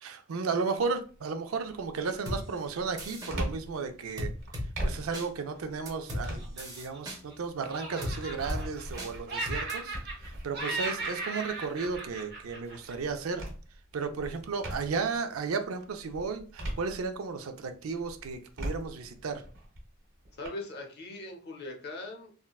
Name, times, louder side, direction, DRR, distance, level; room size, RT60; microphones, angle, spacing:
voice 1, 0.0-4.3 4.8-10.0 10.4-13.4 13.9-19.4, right 4 dB, 85° right, 7 dB, 0.4 m, -34 dB
sound 1, 0.8-1.2 1.7-15.2 15.6-17.5 17.9-20.5, equal, 65° right, 1.3 m, -41 dB
sound 2, 2.3-2.4 3.0-3.3 4.2-4.7 5.1-5.3 5.9-6.2 6.6-7.2 8.0-8.2 8.5-8.6 9.0-9.1 9.5-9.7, left 1 dB, 20° right, 0.7 m, -35 dB
Laughter, 6.1-7.3 7.6-9.0 9.3-10.3 10.5-13.1, right 3 dB, 50° right, 0.8 m, -37 dB
voice 2, 20.4-22.3, left 2 dB, 50° left, 2 dB, 0.7 m, -40 dB
3.6 x 2.2 x 2.3 m, 0.39 s
head